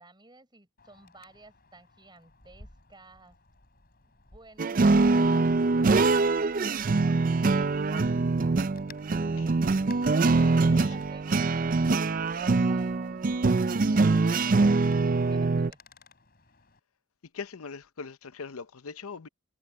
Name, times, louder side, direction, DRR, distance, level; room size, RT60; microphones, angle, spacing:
voice 1, 0.0-3.4 4.0-8.2 10.4-15.8, right 2 dB, 20° right, 5.8 m, -54 dB
Wind, 0.8-16.8, left 2 dB, 45° left, 4.8 m, -57 dB
sound 1, 4.6-15.7, right 3 dB, 40° right, 0.5 m, -24 dB
voice 2, 10.1-11.0 17.3-19.3, left 5 dB, 90° left, 0.8 m, -42 dB
head